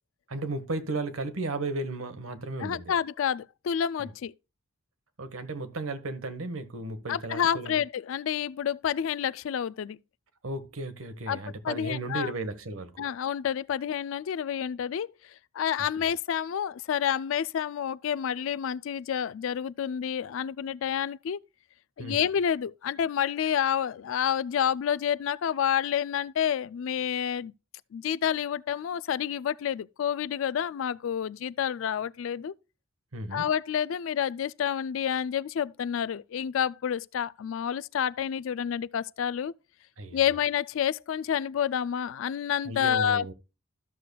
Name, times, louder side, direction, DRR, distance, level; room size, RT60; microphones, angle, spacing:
voice 1, 0.3-2.9 4.0-4.1 5.2-7.8 10.4-13.0 16.0-16.1 22.0-22.2 33.1-33.4 40.0-40.4 42.6-43.3, right 2 dB, 75° right, 1.1 m, -35 dB
voice 2, 2.6-4.3 7.1-10.0 11.3-12.3 13.0-15.1 15.5-21.4 22.0-27.5 27.9-32.5 33.3-39.5 40.1-43.3, left 8 dB, 65° left, 0.3 m, -29 dB
13.5 x 6.7 x 2.2 m
head